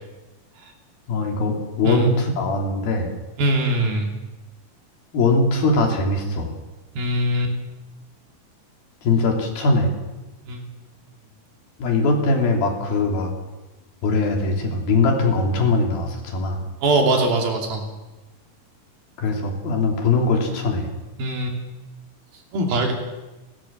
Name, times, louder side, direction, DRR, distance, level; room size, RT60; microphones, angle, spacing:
voice 1, 1.1-3.1 5.1-6.5 9.0-9.9 11.8-13.3 14.0-16.6 19.2-20.9, left 3 dB, 75° left, 2 dB, 4.8 m, -21 dB
voice 2, 3.4-4.1 7.0-7.5 10.5-10.6 16.8-17.8 21.2-21.6 22.5-23.0, right 1 dB, 75° right, 2 dB, 4.8 m, -21 dB
30.0 x 13.0 x 7.5 m, 1.1 s
omnidirectional pair, 4.3 m